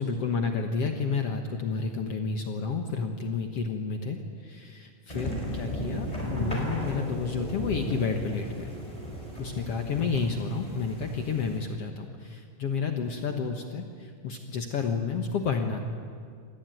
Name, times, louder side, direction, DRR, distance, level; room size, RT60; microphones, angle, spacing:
voice 1, 0.0-8.7 9.4-15.8, left 5 dB, 55° left, 4 dB, 2.0 m, -30 dB
sound 1, 5.1-11.6, equal, 10° left, 5.0 m, -35 dB
26.0 x 19.5 x 9.1 m, 2.1 s
omnidirectional pair, 3.8 m